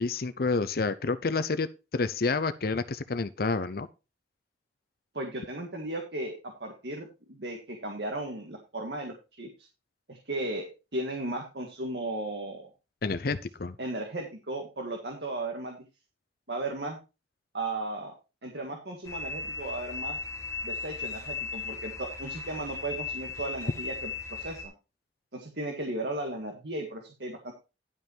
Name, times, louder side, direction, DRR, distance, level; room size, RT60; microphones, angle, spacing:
voice 1, 0.0-1.7 1.9-3.9 13.0-13.7, left 4 dB, 55° left, 0.6 m, -29 dB
voice 2, 5.1-9.5 10.1-12.6 13.8-15.8 16.5-17.0 17.5-18.1 18.4-20.2 20.6-24.7 25.3-27.5, right 2 dB, 70° right, 1.8 m, -35 dB
sound 1, 19.0-24.7, left 4 dB, 15° left, 1.8 m, -37 dB
11.0 x 5.6 x 4.5 m
head